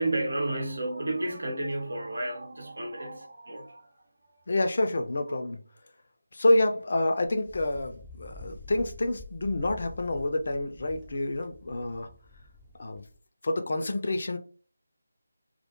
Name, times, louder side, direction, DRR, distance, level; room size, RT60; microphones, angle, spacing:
voice 1, 0.0-4.0, right 2 dB, 65° right, 0.8 m, -32 dB
voice 2, 4.5-5.6 6.3-12.1 12.8-13.0 13.4-14.4, left 2 dB, 50° left, 0.4 m, -28 dB
Wind, 7.3-13.2, left 2 dB, 5° right, 0.4 m, -48 dB
2.2 x 2.1 x 2.9 m
figure-of-eight pair, 160°, 0 cm